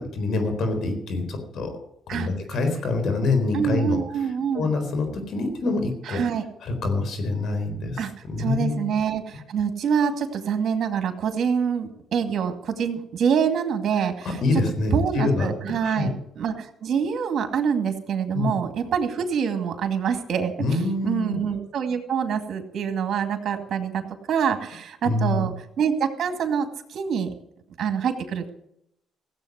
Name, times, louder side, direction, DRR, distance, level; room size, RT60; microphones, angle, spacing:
voice 1, 0.0-1.7 2.1-4.0 4.5-6.2 6.6-8.9 14.4-15.5 15.8-16.1 18.3-18.5 20.6-21.4 25.1-25.5, left 3 dB, 65° left, 6 dB, 4.2 m, -25 dB
voice 2, 3.5-4.7 6.0-6.4 8.0-8.1 8.4-14.6 14.9-27.3 27.8-28.5, right 7 dB, 60° right, 6 dB, 2.2 m, -26 dB
16.5 x 8.1 x 8.1 m, 0.75 s
cardioid pair, 90°, 0 cm